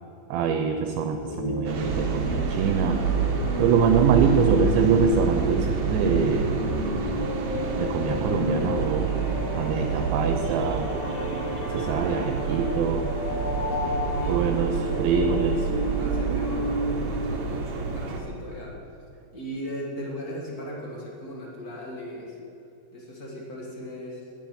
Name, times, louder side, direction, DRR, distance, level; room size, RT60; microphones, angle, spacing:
voice 1, 0.3-3.0 3.6-6.6 7.8-9.1 9.6-11.0 11.7-13.1 14.3-15.7, right 6 dB, 85° right, 5 dB, 2.5 m, -24 dB
sound 1, 1.2-17.4, left 2 dB, 70° left, 2.7 m, -32 dB
sound 2, 1.6-18.2, right 5 dB, 65° right, 2.1 m, -28 dB
voice 2, 13.7-14.6 16.0-19.0 19.3-22.4 22.9-24.2, equal, 35° left, -3 dB, 1.6 m, -38 dB
10.5 x 7.1 x 9.5 m, 2.8 s
omnidirectional pair, 4.3 m